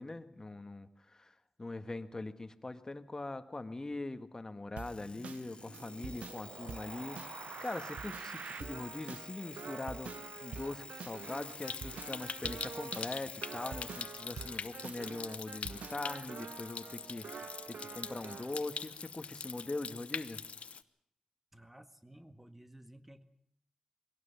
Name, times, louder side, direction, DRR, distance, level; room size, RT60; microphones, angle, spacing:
voice 1, 0.0-7.3 7.6-20.4, left 2 dB, 30° left, 10 dB, 1.6 m, -42 dB
Alarm, 4.8-14.1, left 3 dB, 50° left, 1.0 m, -51 dB
sound 1, 4.8-18.6, right 6 dB, 85° right, 0.8 m, -46 dB
Stream, 11.2-20.8, left 6 dB, 75° left, 0.9 m, -43 dB
voice 2, 21.5-23.2, right 1 dB, 10° right, 9 dB, 1.9 m, -55 dB
22.0 x 17.5 x 6.9 m, 0.70 s
cardioid pair, 65°, 2 cm